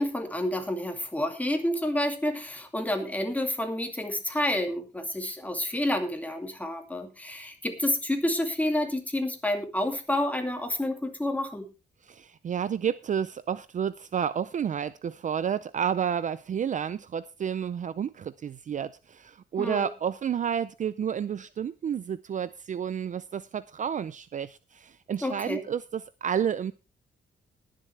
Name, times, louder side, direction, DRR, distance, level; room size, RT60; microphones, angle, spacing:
voice 1, 0.0-11.7 19.6-19.9 25.2-25.6, left 1 dB, 10° left, 5 dB, 2.5 m, -29 dB
voice 2, 12.1-26.7, right 8 dB, 45° right, 16 dB, 0.5 m, -30 dB
20.5 x 7.6 x 3.3 m, 0.29 s
cardioid pair, 120°, 18 cm